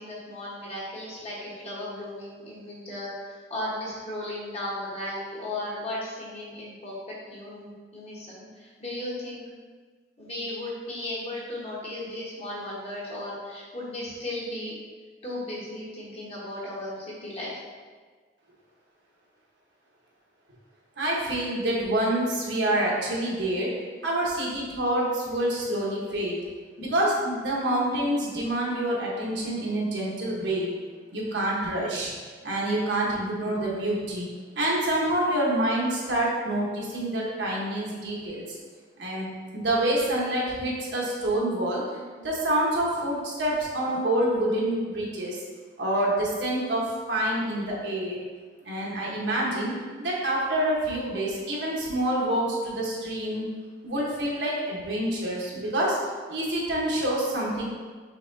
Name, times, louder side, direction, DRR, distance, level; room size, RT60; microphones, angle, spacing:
voice 1, 0.0-6.9 7.3-9.4 10.2-14.7 15.2-17.6, left 1 dB, 35° left, -6 dB, 1.2 m, -35 dB
voice 2, 21.0-23.7 24.0-26.4 26.8-30.7 31.1-32.1 32.4-34.3 34.6-38.6 39.0-39.3 39.5-41.8 42.2-45.4 45.8-48.2 48.6-49.7 50.0-53.4 53.8-56.0 56.3-57.6, right 1 dB, 80° right, -4 dB, 1.1 m, -27 dB
5.7 x 3.5 x 2.7 m, 1.5 s
head